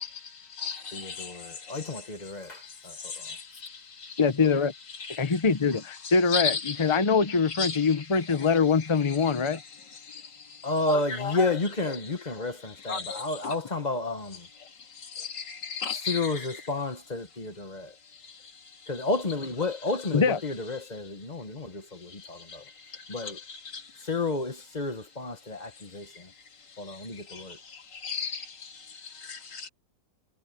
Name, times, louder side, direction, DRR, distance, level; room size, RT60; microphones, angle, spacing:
voice 1, 0.0-1.9 2.4-4.2 5.0-5.4 6.0-7.1 7.5-7.9 8.4-8.6 9.1-9.6 9.9-11.5 11.9-12.0 12.8-13.6 14.6-16.5 18.1-18.9 22.1-24.1 26.0-26.1 26.7-29.7, left 5 dB, 85° left, 3.0 m, -37 dB
voice 2, 0.9-3.4 10.6-14.5 16.1-17.9 18.9-22.6 23.1-23.4 24.0-26.3 26.8-27.6, left 2 dB, 25° left, 1.3 m, -31 dB
voice 3, 4.2-4.7 5.2-9.6 20.1-20.4, left 5 dB, 45° left, 0.3 m, -23 dB
omnidirectional pair, 1.8 m